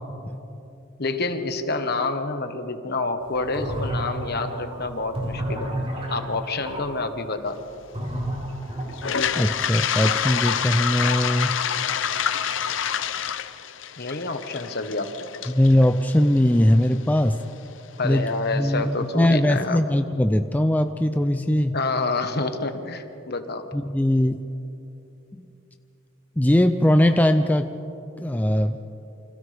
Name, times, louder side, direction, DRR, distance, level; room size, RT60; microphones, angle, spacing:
voice 1, 1.0-5.7 6.1-7.7 14.0-15.5 18.0-19.8 21.7-23.6, left 3 dB, 55° left, 7 dB, 1.3 m, -28 dB
sound 1, 3.3-6.8 7.9-9.6, equal, 30° right, 4.8 m, -31 dB
Toilet flush, 8.9-16.9, left 8 dB, 75° left, 0.7 m, -27 dB
voice 2, 9.4-11.6 15.5-17.4 18.0-18.3 18.6-21.8 23.7-24.4 25.4-25.5 26.4-27.7 28.2-28.8, left 1 dB, 10° left, 8 dB, 0.5 m, -20 dB
29.0 x 25.5 x 3.5 m, 2.9 s
head